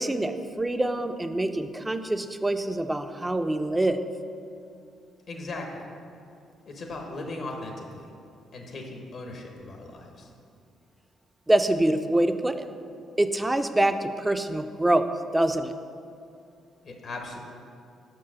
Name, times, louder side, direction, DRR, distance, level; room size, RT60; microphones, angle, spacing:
voice 1, 0.0-4.0 11.5-12.7 13.2-15.1 15.3-15.7, right 1 dB, 10° right, 9 dB, 0.4 m, -25 dB
voice 2, 5.3-5.9 6.7-8.1 8.5-10.3 16.8-17.4, left 2 dB, 60° left, 1 dB, 1.0 m, -38 dB
5.6 x 4.6 x 6.2 m, 2.5 s
cardioid pair, 90°, 0 cm